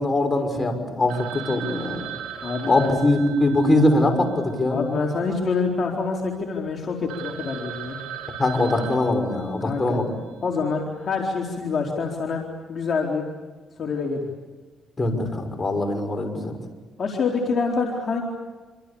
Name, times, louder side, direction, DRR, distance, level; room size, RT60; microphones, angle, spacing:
voice 1, 0.0-2.1 2.6-4.8 8.4-10.1 15.0-16.6, left 2 dB, 25° left, 5 dB, 6.2 m, -22 dB
Telephone, 1.1-5.4 5.7-5.8 6.3-6.4 6.8-6.9 7.1-10.0, right 10 dB, 85° right, 6.4 m, -38 dB
voice 2, 2.4-2.9 4.7-8.0 9.6-10.0 10.4-12.4 12.7-13.3 13.8-14.3 17.0-18.2, left 4 dB, 50° left, 0 dB, 4.1 m, -26 dB
27.0 x 27.0 x 7.1 m, 1.3 s
cardioid pair, 90°, 0 cm